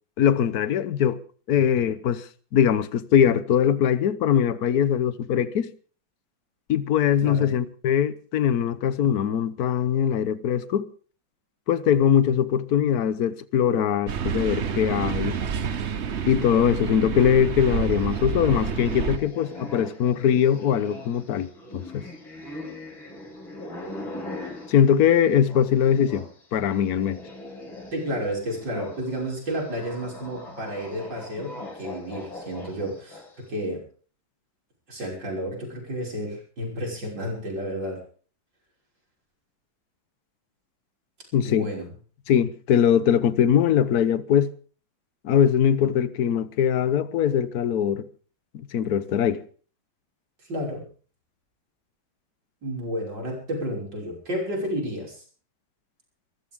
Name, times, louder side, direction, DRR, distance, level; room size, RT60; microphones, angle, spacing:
voice 1, 0.2-1.2 1.5-2.3 2.5-5.7 6.7-10.9 11.7-15.4 16.3-21.5 21.7-22.1 24.7-26.2 26.5-27.2 41.3-41.7 42.3-44.5 45.2-48.1 48.5-49.4, left 8 dB, 60° left, 1.3 m, -21 dB
sound 1, 14.1-19.2, right 7 dB, 45° right, 1.0 m, -28 dB
sound 2, 17.6-26.3 26.6-33.4, left 2 dB, 80° left, 6.5 m, -41 dB
voice 2, 27.9-33.2 33.5-33.8 34.9-38.0 41.3-41.9 50.5-50.8 52.6-55.2, equal, 65° right, 6.6 m, -31 dB
23.5 x 14.5 x 3.7 m
omnidirectional pair, 2.1 m